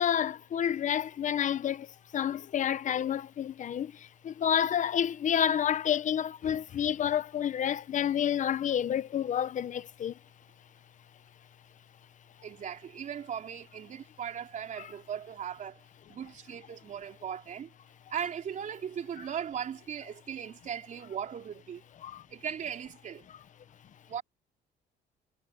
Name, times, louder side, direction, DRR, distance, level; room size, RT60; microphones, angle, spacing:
voice 1, 0.0-1.9 2.1-10.1 22.0-22.2, left 9 dB, 50° left, 1.0 m, -29 dB
voice 2, 12.4-15.8 16.1-17.7 18.1-21.8 22.3-23.2 24.1-24.2, right 8 dB, 50° right, 3.7 m, -38 dB
cardioid pair, 110°, 17 cm